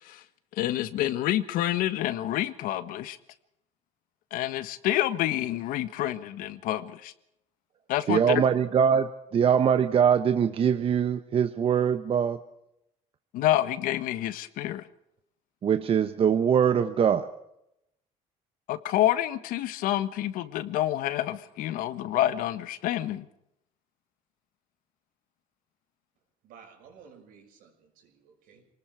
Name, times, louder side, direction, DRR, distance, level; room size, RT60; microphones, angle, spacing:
voice 1, 0.6-3.2 4.3-7.1 7.9-8.4 13.3-14.8 18.7-23.3, left 13 dB, 75° left, 13 dB, 1.5 m, -28 dB
voice 2, 8.1-12.4 15.6-17.3, right 8 dB, 40° right, 9 dB, 1.2 m, -23 dB
voice 3, 26.4-28.7, right 6 dB, 75° right, 3 dB, 6.4 m, -54 dB
27.5 x 19.5 x 4.8 m, 0.80 s
cardioid pair, 125°, 14 cm